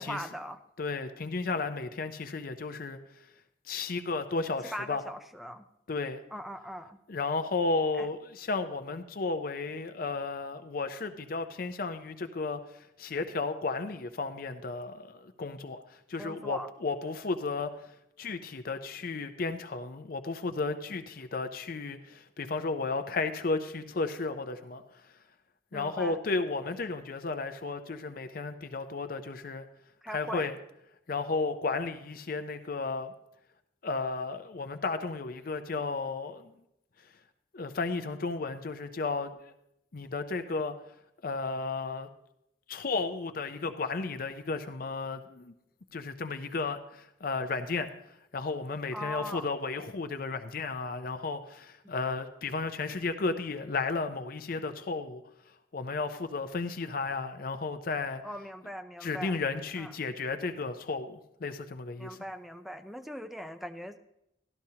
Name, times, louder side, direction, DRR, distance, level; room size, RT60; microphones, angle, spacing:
voice 1, 0.0-0.6 4.6-5.7 6.3-7.0 8.0-8.1 16.2-16.7 25.7-26.2 30.0-30.5 48.9-49.5 58.2-59.4 59.8-59.9 62.0-64.0, equal, ahead, 7 dB, 0.4 m, -40 dB
voice 2, 0.8-3.0 3.7-5.0 5.9-6.2 7.1-15.8 16.1-17.9 18.2-24.8 25.7-29.6 30.1-30.6 31.1-33.1 33.8-36.5 37.5-39.5 39.9-40.8 41.2-42.1 42.7-45.5 45.9-47.9 48.3-55.2 55.7-58.2 59.0-62.2, left 3 dB, 50° left, 9 dB, 0.5 m, -33 dB
13.0 x 12.0 x 2.8 m, 0.81 s
head